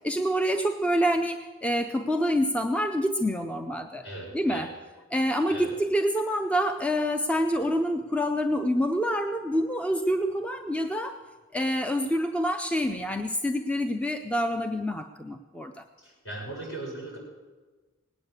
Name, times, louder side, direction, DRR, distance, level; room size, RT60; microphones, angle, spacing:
voice 1, 0.0-4.0 4.3-4.7 5.1-11.2 11.5-15.8, equal, 5° left, 7 dB, 0.5 m, -27 dB
voice 2, 4.0-4.7 5.5-5.7 16.0-17.2, right 2 dB, 60° left, -4 dB, 7.4 m, -38 dB
19.0 x 9.1 x 8.2 m, 1.3 s
head